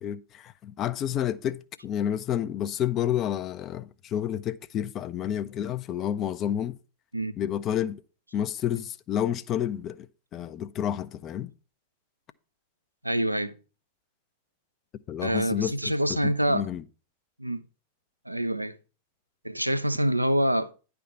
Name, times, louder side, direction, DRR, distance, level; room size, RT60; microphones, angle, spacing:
voice 1, 0.0-6.8 7.4-8.0 8.3-10.1 10.3-11.5 15.1-16.8, left 10 dB, 30° left, 0.5 m, -30 dB
voice 2, 13.0-13.5 15.2-16.7 17.4-17.6 18.3-18.8 19.4-20.7, right 1 dB, 85° right, 0.5 m, -26 dB
10.0 x 3.5 x 7.0 m
figure-of-eight pair, 90°, 0 cm